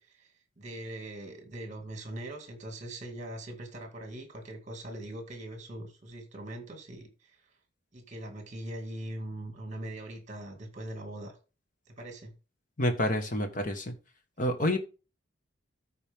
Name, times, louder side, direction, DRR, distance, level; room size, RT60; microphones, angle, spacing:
voice 1, 0.0-7.4 7.9-11.4 11.9-12.3, right 1 dB, 40° right, 5 dB, 2.1 m, -41 dB
voice 2, 12.8-13.9 14.4-14.8, left 1 dB, 40° left, 6 dB, 1.4 m, -28 dB
13.5 x 4.5 x 3.6 m, 0.33 s
head